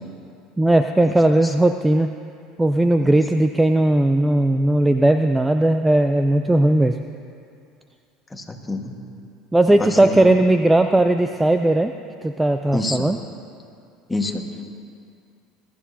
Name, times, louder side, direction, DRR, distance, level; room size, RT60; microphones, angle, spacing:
voice 1, 0.6-2.1 2.6-7.0 9.5-11.9 12.2-13.2, right 1 dB, 10° right, 7 dB, 0.5 m, -17 dB
voice 2, 8.3-8.9 9.8-10.3 12.7-13.1 14.1-14.6, left 2 dB, 15° left, 3 dB, 1.6 m, -27 dB
21.5 x 13.0 x 2.8 m, 2.4 s
hypercardioid pair, 75°, 0 cm